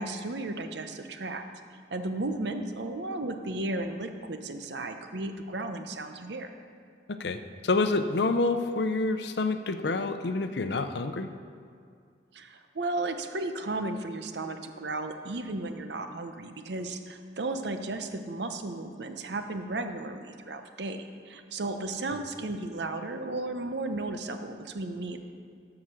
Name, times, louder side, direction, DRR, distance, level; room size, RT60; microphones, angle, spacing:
voice 1, 0.0-1.4 1.9-6.5 12.3-25.2, right 2 dB, 75° right, 7 dB, 0.8 m, -34 dB
voice 2, 7.1-11.3, left 3 dB, 70° left, 9 dB, 0.6 m, -28 dB
13.0 x 5.0 x 6.3 m, 2.3 s
head